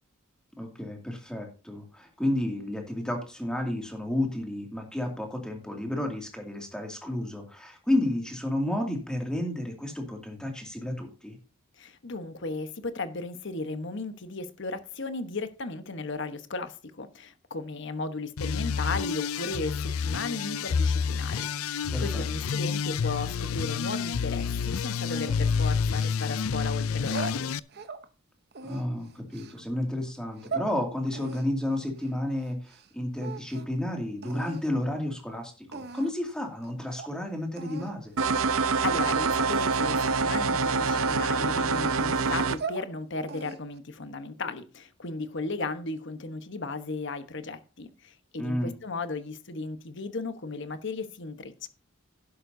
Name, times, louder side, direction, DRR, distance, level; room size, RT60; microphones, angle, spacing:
voice 1, 0.6-11.4 21.9-22.2 28.6-38.1 48.4-48.8, left 1 dB, 5° left, 2.4 m, -31 dB
voice 2, 11.8-27.5 38.5-51.7, left 3 dB, 55° left, 1.1 m, -35 dB
sound 1, 18.4-27.6, left 6 dB, 85° left, 0.5 m, -29 dB
sound 2, 25.1-26.5 26.9-28.1 28.5-29.6 30.2-30.7 31.1-32.9 33.2-33.8 34.2-34.7 35.3-35.4 35.7-36.3 36.6-36.7 37.0-37.1 37.6-37.9 38.3-38.5 39.1-39.4 39.9-40.3 40.7-41.9 42.4-42.9 43.3-43.8, right 5 dB, 50° right, 0.9 m, -40 dB
sound 3, 38.2-42.6, right 4 dB, 75° right, 0.7 m, -25 dB
11.5 x 11.0 x 2.7 m
head